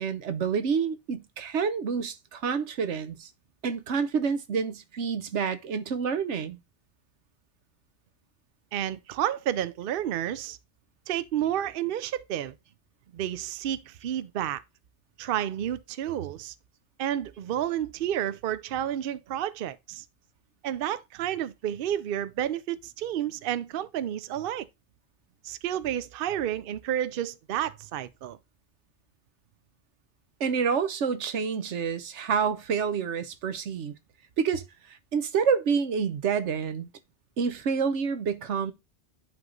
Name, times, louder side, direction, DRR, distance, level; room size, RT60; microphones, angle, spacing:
voice 1, 0.0-3.3 3.6-6.6 30.4-33.9 34.4-34.6 34.9-36.9 37.4-38.7, right 6 dB, 85° right, 1.2 m, -28 dB
voice 2, 8.7-10.6 11.1-12.5 13.1-14.6 15.2-16.5 17.0-20.0 20.6-24.7 25.4-28.4, right 11 dB, 60° right, 0.7 m, -30 dB
10.5 x 3.6 x 3.8 m
omnidirectional pair, 1.2 m